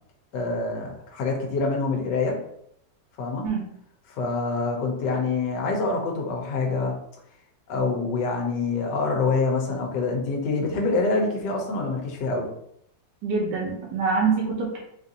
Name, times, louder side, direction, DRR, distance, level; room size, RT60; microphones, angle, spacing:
voice 1, 0.3-2.4 3.2-3.4 4.1-7.0 7.7-12.5, left 3 dB, 75° left, 0 dB, 1.3 m, -26 dB
voice 2, 13.2-14.8, right 5 dB, 85° right, -3 dB, 1.5 m, -25 dB
4.0 x 2.5 x 2.7 m, 0.71 s
omnidirectional pair, 1.9 m